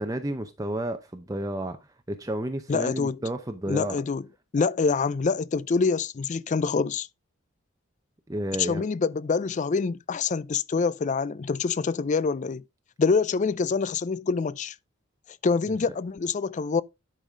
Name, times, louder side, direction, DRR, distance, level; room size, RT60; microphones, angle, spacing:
voice 1, 0.0-1.8 2.1-4.0 8.3-8.9, right 1 dB, 15° right, 0.7 m, -31 dB
voice 2, 2.7-3.2 3.7-4.2 4.5-7.1 8.6-12.6 13.0-14.7 15.4-16.8, left 4 dB, 35° left, 0.4 m, -26 dB
10.5 x 5.5 x 3.6 m
head